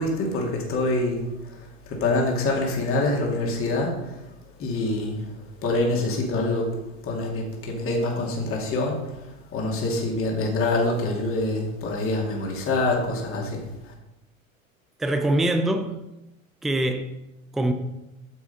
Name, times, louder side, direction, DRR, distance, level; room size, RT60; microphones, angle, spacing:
voice 1, 0.0-4.3 4.6-13.9, left 2 dB, 30° left, 2.3 m, -26 dB
voice 2, 15.0-16.0 16.6-17.1 17.5-17.7, right 1 dB, ahead, 0.5 m, -23 dB
9.6 x 7.1 x 4.1 m
figure-of-eight pair, 90°, 42 cm